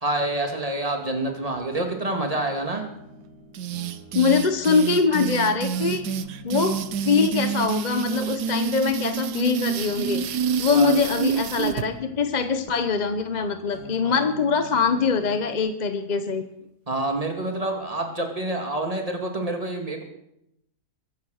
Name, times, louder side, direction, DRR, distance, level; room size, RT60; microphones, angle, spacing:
voice 1, 0.0-2.8 10.7-10.9 14.0-14.2 16.9-20.0, right 2 dB, 20° right, 3 dB, 2.5 m, -27 dB
sound 1, 1.2-15.6, equal, 60° left, 6.7 m, -46 dB
sound 2, 3.5-11.9, right 8 dB, 85° right, 1.4 m, -28 dB
voice 2, 4.1-6.0 6.4-6.8 7.0-10.2 10.6-16.4, left 5 dB, 35° left, 8 dB, 0.8 m, -23 dB
23.0 x 8.8 x 6.5 m, 0.81 s
omnidirectional pair, 1.7 m